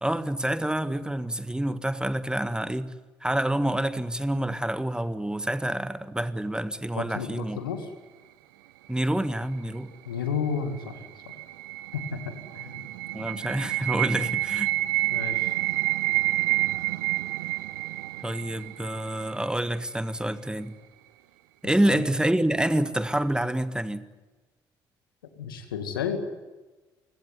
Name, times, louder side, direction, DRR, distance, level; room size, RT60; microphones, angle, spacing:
voice 1, 0.0-2.9 3.2-7.6 8.9-9.9 13.1-14.7 18.2-20.7 21.6-24.0, right 1 dB, 5° right, 12 dB, 1.7 m, -27 dB
voice 2, 7.0-7.9 10.0-11.3 11.9-12.8 15.1-15.5 21.8-22.0 25.4-26.2, left 6 dB, 80° left, 8 dB, 2.3 m, -32 dB
sound 1, 10.6-19.5, right 18 dB, 70° right, 0.8 m, -29 dB
28.5 x 17.0 x 9.6 m, 1.2 s
figure-of-eight pair, 45°, 11 cm